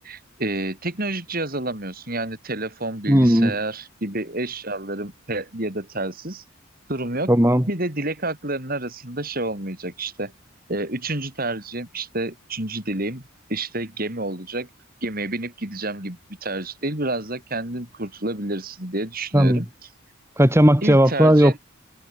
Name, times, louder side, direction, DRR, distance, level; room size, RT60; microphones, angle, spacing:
voice 1, 0.0-6.4 6.9-7.3 7.7-10.3 10.7-13.2 13.5-14.7 15.0-19.7 20.8-21.6, right 2 dB, 45° right, 4.8 m, -29 dB
voice 2, 3.1-3.5 7.3-7.6 19.3-19.6 20.4-21.6, equal, 10° right, 2.1 m, -16 dB
head